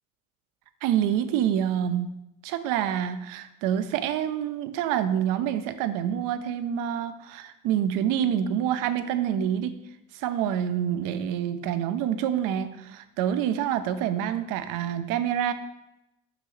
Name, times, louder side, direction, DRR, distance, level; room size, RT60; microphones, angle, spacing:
voice 1, 0.8-2.1 2.4-9.8 10.1-15.5, right 10 dB, 75° right, 11 dB, 0.6 m, -27 dB
6.6 x 5.7 x 3.1 m, 0.90 s
cardioid pair, 175°, 33 cm